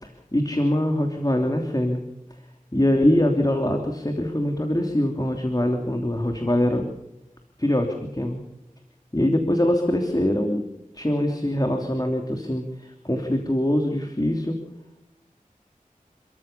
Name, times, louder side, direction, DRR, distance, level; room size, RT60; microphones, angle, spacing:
voice 1, 0.0-2.0 2.7-6.9 7.6-8.4 9.1-10.6 10.9-14.5, left 1 dB, 25° left, 3 dB, 3.1 m, -23 dB
29.5 x 14.5 x 6.9 m, 0.88 s
wide cardioid pair, 45°, 14 cm